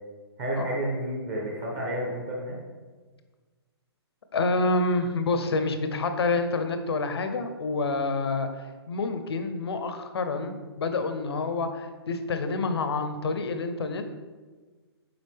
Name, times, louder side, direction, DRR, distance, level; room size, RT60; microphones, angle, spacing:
voice 1, 0.4-2.6, right 1 dB, 20° right, -3 dB, 0.9 m, -30 dB
voice 2, 4.3-8.5 8.9-14.1, left 3 dB, 70° left, 8 dB, 0.8 m, -28 dB
7.9 x 4.9 x 3.6 m, 1.4 s
hypercardioid pair, 170°, 14 cm